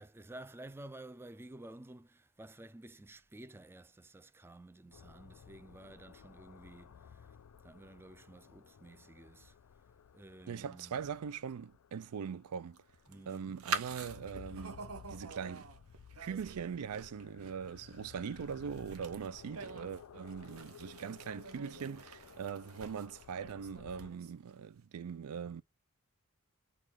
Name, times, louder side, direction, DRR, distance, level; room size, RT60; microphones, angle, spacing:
voice 1, 0.0-7.3 7.6-9.5 10.1-11.0 13.1-13.6, right 1 dB, 10° right, 0.3 m, -52 dB
sound 1, 4.9-24.1, left 7 dB, 85° left, 0.4 m, -56 dB
voice 2, 10.5-12.8 13.3-15.7 16.2-25.6, right 7 dB, 85° right, 0.4 m, -41 dB
sound 2, 12.8-24.5, right 5 dB, 70° right, 0.8 m, -45 dB
6.1 x 2.4 x 3.4 m
head